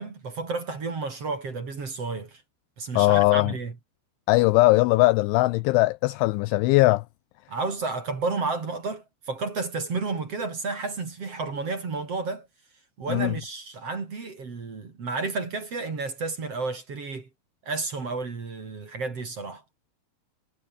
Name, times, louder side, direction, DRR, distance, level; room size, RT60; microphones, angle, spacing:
voice 1, 0.0-2.4 2.8-3.7 7.5-12.5 13.0-17.3 17.7-19.6, right 4 dB, 35° right, 3.7 m, -31 dB
voice 2, 3.0-3.5 4.3-7.0 13.1-13.3, left 21 dB, 85° left, 2.7 m, -20 dB
omnidirectional pair, 5.9 m